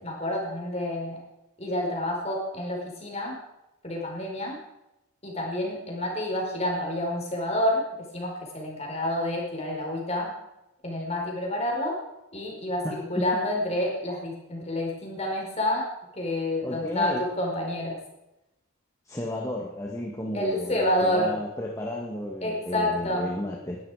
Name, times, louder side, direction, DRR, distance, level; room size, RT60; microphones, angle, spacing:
voice 1, 0.0-1.2 1.6-3.4 3.8-4.6 5.2-10.3 10.8-12.0 12.3-15.9 16.1-18.0 20.3-21.4 22.4-23.3, left 1 dB, 30° left, 0 dB, 4.7 m, -28 dB
voice 2, 12.8-13.3 16.6-17.2 19.1-23.8, left 1 dB, 15° left, -1 dB, 1.8 m, -33 dB
20.0 x 12.5 x 5.0 m, 0.93 s
head